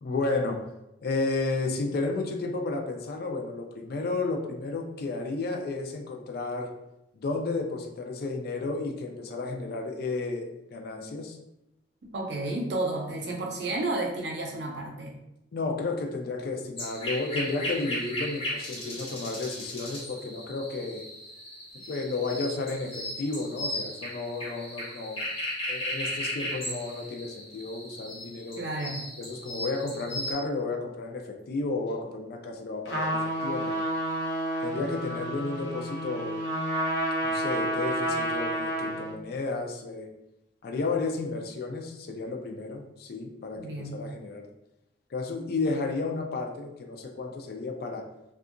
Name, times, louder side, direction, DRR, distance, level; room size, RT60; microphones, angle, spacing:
voice 1, 0.0-0.6 1.0-6.7 7.2-11.4 15.5-21.0 21.9-25.2 25.7-28.6 29.2-33.8 34.6-36.4 37.2-40.1 40.6-44.5 45.1-48.1, left 3 dB, 55° left, 3 dB, 0.4 m, -32 dB
voice 2, 12.1-15.1 28.6-29.0 43.6-44.0, right 2 dB, 65° right, 0 dB, 0.6 m, -31 dB
sound 1, 16.8-30.3, left 1 dB, 30° left, 0.7 m, -36 dB
Trumpet, 32.8-39.1, right 1 dB, 80° left, 0.7 m, -30 dB
2.7 x 2.3 x 2.5 m, 0.88 s
head